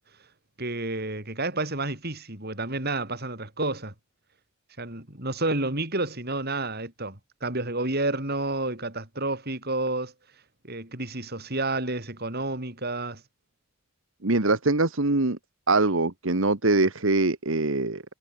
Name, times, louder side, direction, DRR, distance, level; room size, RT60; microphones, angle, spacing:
voice 1, 0.6-3.9 4.8-10.1 10.6-13.2, right 2 dB, 45° right, 6.0 m, -30 dB
voice 2, 14.2-15.4 15.7-18.0, right 2 dB, 65° right, 1.6 m, -23 dB
head